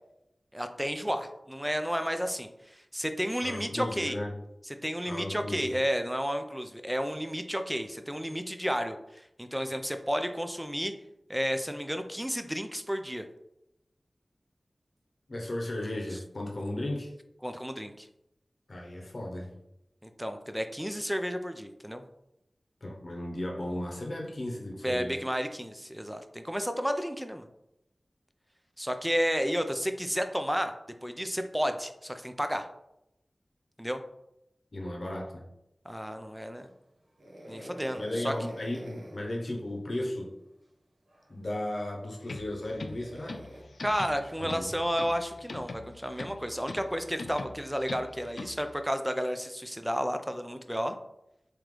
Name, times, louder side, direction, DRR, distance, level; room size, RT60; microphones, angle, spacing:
voice 1, 0.5-4.2 4.8-10.9 11.3-13.3 17.4-18.1 20.0-22.0 24.8-27.5 28.8-30.7 31.0-32.7 33.8-34.0 35.9-36.7 37.5-38.3 43.8-51.0, equal, 5° right, 7 dB, 0.4 m, -32 dB
voice 2, 3.4-4.3 5.1-5.7 15.3-17.1 18.7-19.5 22.8-25.2 34.7-35.4 38.0-40.3 41.3-43.4 44.4-44.7, left 1 dB, 65° left, 0 dB, 0.8 m, -35 dB
sound 1, 37.2-39.3 41.1-41.2 42.8-43.6, equal, 75° right, 0.8 m, -45 dB
sound 2, 42.2-48.8, left 3 dB, 80° left, 0.3 m, -43 dB
3.7 x 2.9 x 3.2 m, 0.85 s
wide cardioid pair, 55°, 0 cm